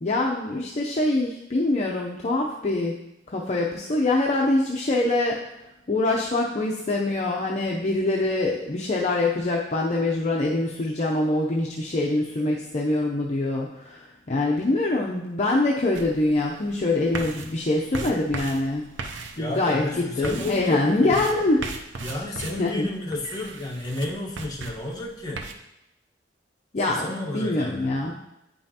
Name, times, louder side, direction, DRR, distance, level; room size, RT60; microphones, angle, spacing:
voice 1, 0.0-3.0 3.3-5.4 5.9-18.9 19.4-21.6 22.0-22.2 22.6-22.9 26.7-27.1 27.3-28.1, left 2 dB, 40° left, -2 dB, 0.6 m, -24 dB
sound 1, 15.9-25.5, right 3 dB, 90° right, 0.7 m, -38 dB
voice 2, 19.3-21.2 22.0-25.4 26.9-28.1, left 2 dB, 20° left, -3 dB, 1.2 m, -31 dB
8.8 x 5.5 x 2.8 m, 0.90 s
head